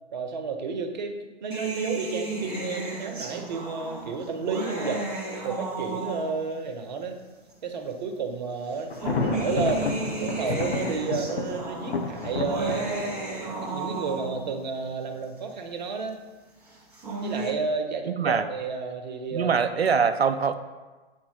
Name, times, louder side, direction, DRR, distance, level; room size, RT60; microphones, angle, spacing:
voice 1, 0.1-1.1 1.4-5.0 5.4-7.2 7.6-9.9 10.2-13.2 13.6-16.2 17.2-19.5, right 4 dB, 45° right, 5 dB, 0.8 m, -31 dB
sound 1, 1.5-6.6 7.5-7.6 8.7-14.6 16.7-17.5, right 3 dB, 5° right, 0.4 m, -34 dB
Thunder, 8.9-14.7, left 4 dB, 75° left, 0.7 m, -32 dB
voice 2, 18.1-18.4 19.3-20.5, right 6 dB, 80° right, 10 dB, 0.5 m, -23 dB
8.2 x 4.4 x 2.9 m, 1.3 s
figure-of-eight pair, 120°, 31 cm